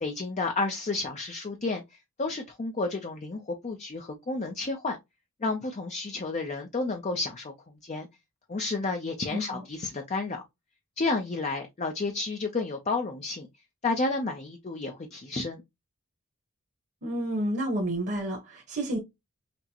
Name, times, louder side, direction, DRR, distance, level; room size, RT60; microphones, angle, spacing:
voice 1, 0.0-1.8 2.2-5.0 5.4-7.5 7.8-8.1 8.5-10.4 11.0-13.5 13.8-15.6, left 3 dB, 30° left, 0.5 m, -31 dB
voice 2, 9.3-9.6 17.0-19.0, right 1 dB, 50° right, 1.1 m, -30 dB
5.8 x 2.1 x 2.9 m
head